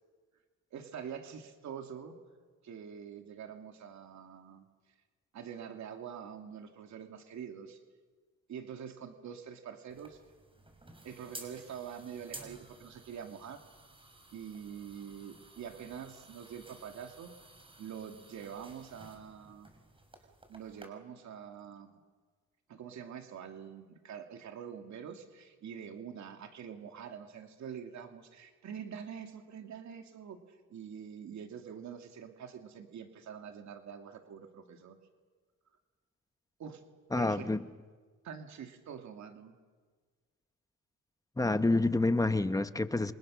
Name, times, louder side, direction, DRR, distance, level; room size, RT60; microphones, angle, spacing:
voice 1, 0.7-2.1 2.6-4.7 5.3-7.8 8.5-10.2 11.0-13.6 14.3-17.3 17.8-19.7 20.5-22.0 22.7-35.0 36.6-36.8 37.1-37.5 38.2-39.6, right 8 dB, 65° right, 4 dB, 2.6 m, -45 dB
sound 1, 9.9-20.9, right 2 dB, 15° right, 5.2 m, -54 dB
voice 2, 37.1-37.6 41.4-43.1, left 2 dB, 10° left, 11 dB, 1.1 m, -28 dB
29.0 x 25.0 x 6.5 m, 1.5 s
cardioid pair, 90°, 30 cm